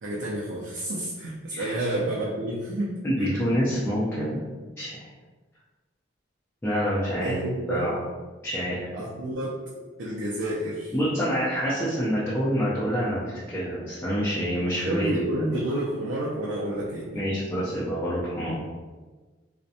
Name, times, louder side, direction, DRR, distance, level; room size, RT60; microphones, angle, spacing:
voice 1, 0.0-3.4 7.2-7.9 8.9-9.6 10.0-10.9 14.8-17.2, right 1 dB, 70° right, -6 dB, 0.4 m, -30 dB
voice 2, 3.0-4.4 4.8-5.0 6.6-7.4 7.7-8.0 8.4-8.9 10.9-15.2 17.1-18.6, equal, 10° left, -9 dB, 0.4 m, -27 dB
2.5 x 2.1 x 2.6 m, 1.3 s
head